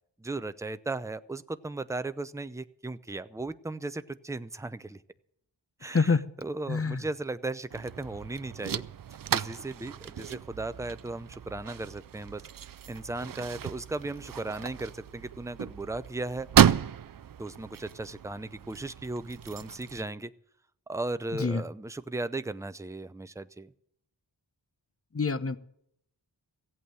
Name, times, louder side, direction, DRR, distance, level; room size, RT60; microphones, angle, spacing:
voice 1, 0.2-5.0 5.8-8.8 9.3-12.4 12.9-16.5 17.4-20.3 20.9-23.7, right 2 dB, 5° right, 12 dB, 0.6 m, -36 dB
voice 2, 5.9-6.2 6.7-7.0 21.4-21.6 25.1-25.6, left 4 dB, 30° left, 13 dB, 0.9 m, -26 dB
sound 1, 7.7-20.0, right 9 dB, 50° right, 0.5 m, -32 dB
16.0 x 8.4 x 7.7 m, 0.72 s
wide cardioid pair, 60°, 44 cm